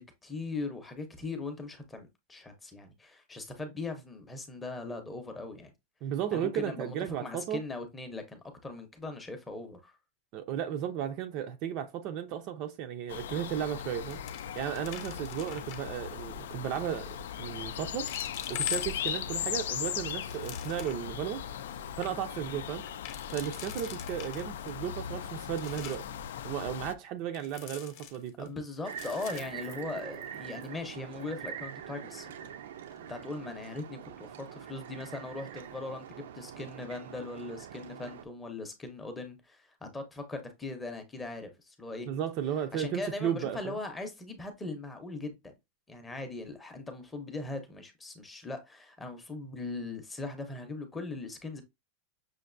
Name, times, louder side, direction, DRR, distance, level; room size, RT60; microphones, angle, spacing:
voice 1, 0.0-5.7 6.3-6.9 7.2-9.9 22.4-22.6 28.4-32.5 33.1-42.1 42.7-45.4 45.9-51.6, left 3 dB, 10° left, 0.6 m, -40 dB
voice 2, 6.0-7.6 10.3-14.2 14.6-18.1 18.5-21.5 22.0-22.8 23.3-26.0 26.4-28.5 42.1-43.8, right 10 dB, 35° right, 0.4 m, -34 dB
sound 1, 13.1-26.9, left 9 dB, 85° left, 0.4 m, -38 dB
sound 2, 13.3-13.6 13.9-16.0 16.6-17.0 17.6-17.7 18.1-19.4 19.9-21.1 21.5-21.6 21.8-22.1 22.8-24.7 25.2-26.2 27.3-28.5 28.9-30.4 30.6-30.7 31.2-31.5, left 9 dB, 40° left, 0.8 m, -47 dB
sound 3, 28.8-38.2, right 9 dB, 80° right, 0.5 m, -44 dB
6.3 x 2.5 x 2.5 m
supercardioid pair, 175°, 0 cm